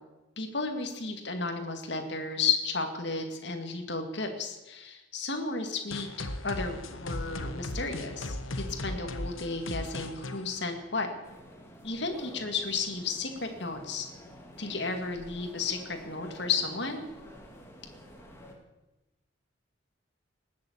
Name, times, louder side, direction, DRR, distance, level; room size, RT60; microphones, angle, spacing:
voice 1, 0.4-6.1 6.4-11.1 11.8-14.1 14.6-17.0, left 4 dB, 60° left, 5 dB, 2.3 m, -33 dB
sound 1, 5.9-11.4, left 1 dB, 90° left, 1.3 m, -37 dB
sound 2, 11.2-18.5, equal, 15° left, 2.3 m, -50 dB
19.5 x 7.7 x 8.8 m, 1.0 s
head